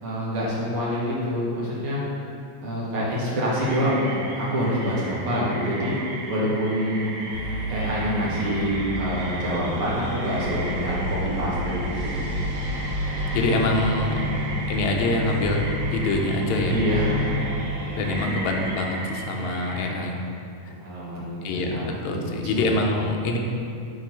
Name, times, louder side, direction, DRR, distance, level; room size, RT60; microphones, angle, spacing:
voice 1, 0.0-2.0 2.6-7.1 7.7-12.2 14.1-14.4 16.6-17.5 18.2-18.5 19.3-19.5 20.7-23.0, equal, 55° right, -7 dB, 1.9 m, -27 dB
sound 1, 3.6-19.9, right 2 dB, 85° right, 0.9 m, -37 dB
sound 2, 7.3-18.2, equal, 70° right, 2.2 m, -30 dB
voice 2, 13.3-14.2 14.7-15.6 15.9-16.8 18.0-20.2 21.4-23.4, left 2 dB, 75° left, 1 dB, 2.0 m, -25 dB
9.1 x 3.1 x 5.4 m, 2.6 s
omnidirectional pair, 3.5 m